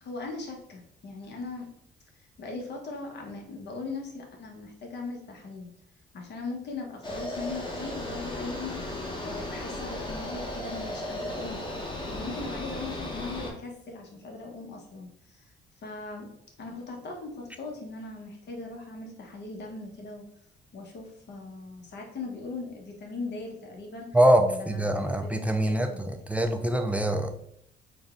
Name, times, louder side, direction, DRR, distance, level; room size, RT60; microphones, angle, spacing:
voice 1, 0.0-1.7 2.4-5.7 6.1-11.6 12.1-15.5 15.8-16.3 16.6-20.2 20.7-24.1 24.4-26.1, left 3 dB, 60° left, 1 dB, 1.1 m, -39 dB
sound 1, 7.0-13.5, left 1 dB, 25° left, 1.0 m, -35 dB
voice 2, 24.1-27.3, right 1 dB, 5° right, 5 dB, 0.4 m, -24 dB
3.9 x 2.3 x 3.6 m, 0.69 s
cardioid pair, 90°, 20 cm